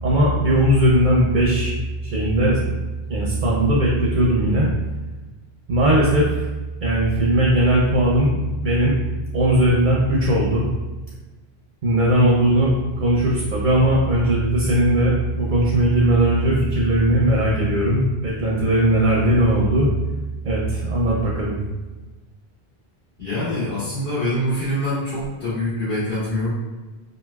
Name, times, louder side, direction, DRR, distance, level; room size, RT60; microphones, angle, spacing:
voice 1, 0.0-1.7 2.0-2.8 3.1-4.7 5.7-6.4 6.8-8.9 9.3-10.6 11.8-19.9 20.4-21.6, right 1 dB, 60° right, -4 dB, 0.7 m, -18 dB
voice 2, 23.2-26.6, left 1 dB, 65° left, -11 dB, 1.4 m, -24 dB
3.0 x 2.6 x 2.2 m, 1.2 s
omnidirectional pair, 1.0 m